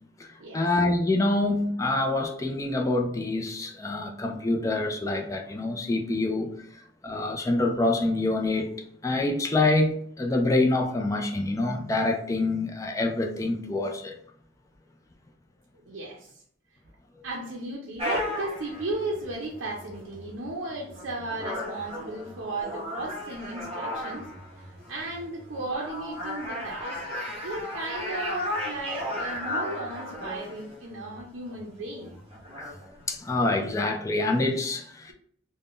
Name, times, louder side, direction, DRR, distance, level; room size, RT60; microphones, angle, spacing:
voice 1, 0.5-6.5 7.0-8.7 9.0-14.1 33.1-35.1, left 2 dB, 15° left, 0.3 m, -26 dB
voice 2, 15.9-16.3 17.2-24.2 24.9-27.0 27.4-32.1, right 2 dB, 85° right, 0.5 m, -35 dB
sound 1, 18.0-33.6, left 1 dB, 30° right, 0.8 m, -36 dB
2.4 x 2.1 x 3.5 m
head